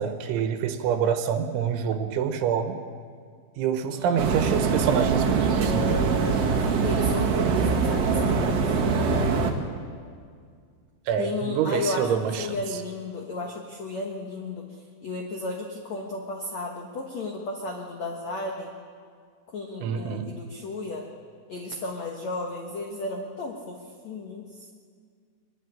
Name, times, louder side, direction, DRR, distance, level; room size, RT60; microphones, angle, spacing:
voice 1, 0.0-2.8 3.6-6.0 11.1-12.6 19.8-20.3, right 8 dB, 80° right, 8 dB, 3.5 m, -26 dB
voice 2, 3.9-4.2 6.6-8.8 11.2-18.7 19.5-21.1 21.5-24.7, left 2 dB, 75° left, 1 dB, 1.6 m, -34 dB
sound 1, 4.2-9.5, right 5 dB, 60° right, 1.7 m, -23 dB
23.0 x 12.5 x 10.0 m, 2.1 s
omnidirectional pair, 5.5 m